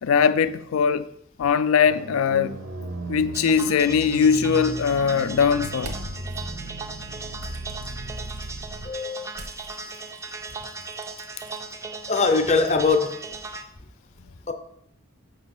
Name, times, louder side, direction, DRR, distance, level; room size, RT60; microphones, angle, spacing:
voice 1, 0.0-1.1 1.4-2.5 3.1-5.9, left 6 dB, 80° left, 0.3 m, -21 dB
sound 1, 1.9-8.9, right 2 dB, 60° right, 0.7 m, -36 dB
sound 2, 3.3-13.6, right 3 dB, 15° right, 0.3 m, -38 dB
sound 3, 5.8-6.4 7.4-8.5 9.3-11.6, right 1 dB, 85° right, 1.2 m, -43 dB
voice 2, 8.8-9.3 12.1-13.2 14.5-14.6, left 4 dB, 35° left, 0.6 m, -21 dB
6.1 x 5.2 x 4.1 m
head